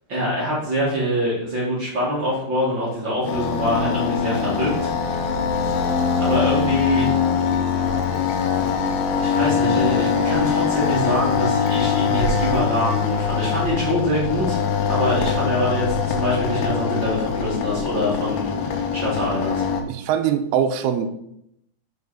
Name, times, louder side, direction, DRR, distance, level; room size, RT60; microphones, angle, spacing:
voice 1, 0.1-5.3 6.2-7.1 9.0-14.6 14.9-19.6, equal, 50° right, -6 dB, 1.4 m, -24 dB
sound 1, 3.3-19.8, left 7 dB, 80° left, 3.0 m, -22 dB
voice 2, 19.9-21.1, right 8 dB, 80° right, 6 dB, 2.4 m, -22 dB
6.8 x 4.8 x 4.8 m, 0.75 s
omnidirectional pair, 5.1 m